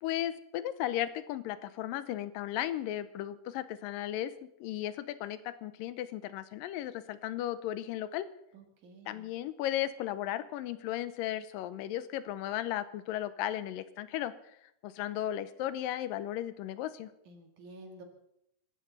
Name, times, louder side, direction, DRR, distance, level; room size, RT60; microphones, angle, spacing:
voice 1, 0.0-4.3 4.6-8.3 9.1-14.3 14.8-17.1, left 12 dB, 85° left, 14 dB, 2.4 m, -35 dB
voice 2, 8.5-9.3 17.3-18.0, right 2 dB, 65° right, 3 dB, 3.5 m, -51 dB
27.0 x 13.0 x 4.1 m, 0.76 s
omnidirectional pair, 3.9 m